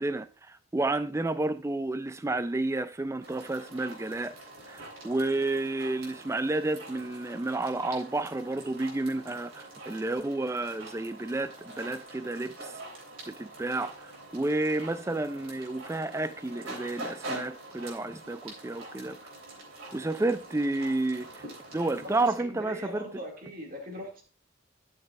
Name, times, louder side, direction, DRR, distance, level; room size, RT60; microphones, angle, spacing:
voice 1, 0.0-4.3 4.7-12.7 13.3-19.2 19.9-21.4 21.7-23.0, right 2 dB, 15° right, 0.3 m, -31 dB
sound 1, 3.2-22.3, right 2 dB, 90° right, 3.4 m, -45 dB
voice 2, 22.0-24.2, equal, 45° right, 2.2 m, -41 dB
12.5 x 6.4 x 2.4 m
head